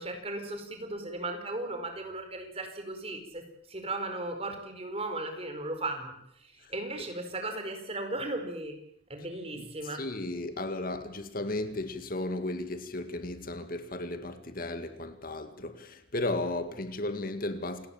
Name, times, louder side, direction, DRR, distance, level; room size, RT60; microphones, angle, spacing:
voice 1, 0.0-3.4 3.7-6.2 6.7-8.7 9.1-10.0, right 2 dB, 30° right, 4.8 m, -36 dB
voice 2, 9.6-17.9, left 2 dB, 50° left, 2.0 m, -35 dB
28.5 x 19.5 x 7.2 m
head